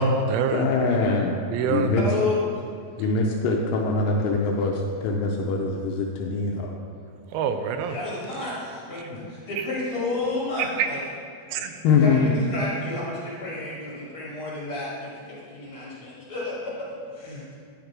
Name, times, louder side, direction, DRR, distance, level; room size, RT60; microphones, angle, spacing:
voice 1, 0.0-0.7 1.5-1.9 7.3-8.0 10.8-10.9 11.5-11.8, right 5 dB, 85° right, 7 dB, 2.4 m, -25 dB
voice 2, 0.5-1.4 1.7-2.0 3.0-6.8 11.8-12.4, left 4 dB, 80° left, 0 dB, 2.1 m, -23 dB
voice 3, 1.9-2.4 7.9-8.5 8.9-11.0 11.5-11.7 12.0-14.9 15.5-16.5 17.2-17.4, left 2 dB, 45° left, -7 dB, 1.9 m, -31 dB
10.0 x 5.2 x 4.6 m, 2.2 s
omnidirectional pair, 4.3 m